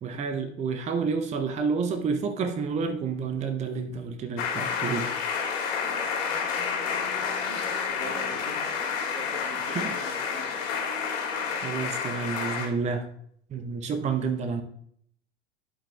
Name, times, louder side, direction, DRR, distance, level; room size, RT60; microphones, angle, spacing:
voice 1, 0.0-5.1 9.7-9.8 11.6-13.0 13.5-14.6, right 5 dB, 20° right, 8 dB, 0.7 m, -29 dB
sound 1, 4.4-12.7, left 6 dB, 50° left, 2.4 m, -30 dB
voice 2, 7.0-8.9 9.1-10.5, right 2 dB, 80° right, 1 dB, 2.1 m, -44 dB
12.5 x 5.4 x 2.3 m, 0.66 s
figure-of-eight pair, 85°, 37 cm